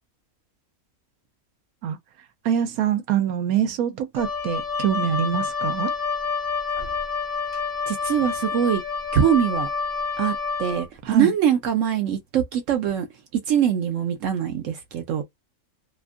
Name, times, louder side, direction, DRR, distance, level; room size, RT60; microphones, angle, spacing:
voice 1, 2.4-5.9 11.0-11.3, right 9 dB, 90° right, 1.0 m, -24 dB
Wind instrument woodwind instrument, 4.2-10.9, left 4 dB, 55° left, 0.7 m, -28 dB
voice 2, 7.9-8.8 9.1-9.7 10.2-13.1 13.3-15.2, right 9 dB, 70° right, 0.9 m, -23 dB
2.8 x 2.3 x 2.5 m
omnidirectional pair, 1.5 m